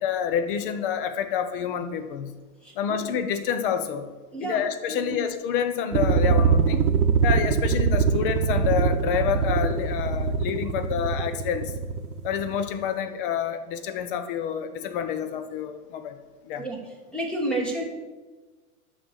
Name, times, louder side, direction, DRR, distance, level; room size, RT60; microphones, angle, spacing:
voice 1, 0.0-2.3 2.8-4.1 4.4-6.8 7.2-11.7 12.2-16.2 16.4-16.7, left 8 dB, 40° left, 9 dB, 0.8 m, -28 dB
voice 2, 2.6-3.0 4.3-4.6 4.9-5.0 16.6-16.8 17.1-17.8, right 1 dB, ahead, -1 dB, 1.1 m, -30 dB
sound 1, 5.9-12.6, right 5 dB, 85° right, 0.9 m, -23 dB
12.0 x 4.0 x 6.5 m, 1.2 s
hypercardioid pair, 155°, 44 cm